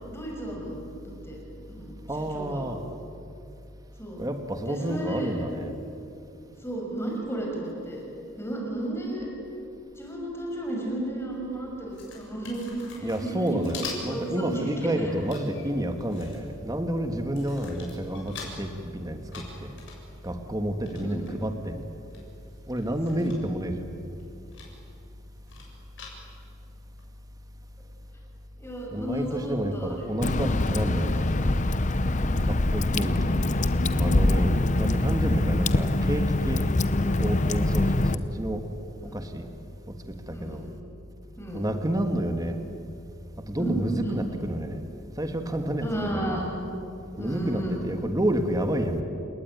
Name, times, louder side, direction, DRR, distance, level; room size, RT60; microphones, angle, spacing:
voice 1, 0.1-0.8 1.2-1.4 1.7-1.9 2.3-2.6 4.0-4.3 4.7-5.3 6.6-8.0 8.4-9.3 9.9-13.7 14.1-15.1 20.9-21.2 23.1-23.3 28.6-30.0 32.2-32.5 34.2-34.6 37.5-38.0 39.0-39.2 40.3-40.6 41.4-41.6 43.6-44.1 45.8-46.5 47.2-47.8, right 1 dB, 10° left, -1 dB, 6.1 m, -33 dB
voice 2, 2.1-2.8 4.2-5.7 13.0-19.8 20.2-21.9 22.7-23.9 28.9-31.5 32.4-33.5 33.9-36.7 37.2-38.6 39.1-39.5 40.3-40.7 41.5-42.6 43.5-44.8 45.2-46.4 47.2-49.0, right 1 dB, 20° right, 6 dB, 1.7 m, -29 dB
sound 1, 11.9-14.3 14.6-16.7 17.2-18.6 19.0-21.3 21.8-21.9 22.1-23.7 23.9-24.7 25.1-26.5 27.0-27.1, left 5 dB, 65° left, 7.0 m, -44 dB
Water / Drip, 30.2-38.2, left 2 dB, 35° left, 0.8 m, -24 dB
29.5 x 18.5 x 9.5 m, 2.6 s
head